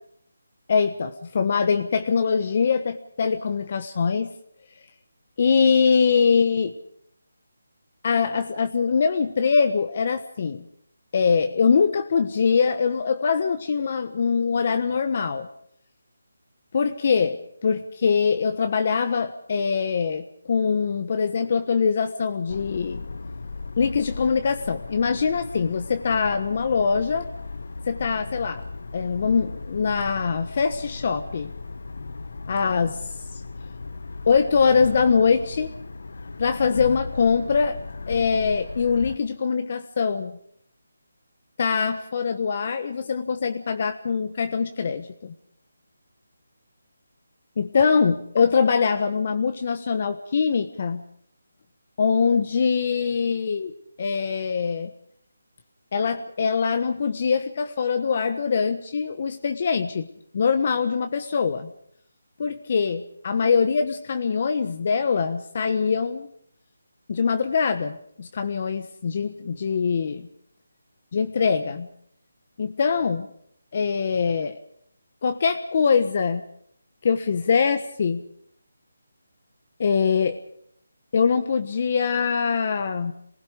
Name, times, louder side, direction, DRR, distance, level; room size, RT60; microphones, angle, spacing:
voice 1, 0.7-4.3 5.4-6.7 8.0-10.6 11.1-15.5 16.7-23.1 23.8-27.3 27.8-28.7 28.9-31.5 32.5-33.0 33.3-33.4 34.3-35.7 36.4-37.8 38.1-40.3 41.6-45.3 47.6-51.0 52.0-54.9 55.9-60.1 60.3-61.7 62.4-66.3 67.1-70.3 71.1-71.9 72.6-73.3 73.7-74.6 75.2-76.4 77.0-78.2 79.8-80.4 81.1-83.1, left 5 dB, 40° left, 8 dB, 1.3 m, -23 dB
sound 1, 22.5-39.2, left 3 dB, 70° left, 1.3 m, -37 dB
27.5 x 20.0 x 5.3 m, 0.69 s
figure-of-eight pair, 165°, 0 cm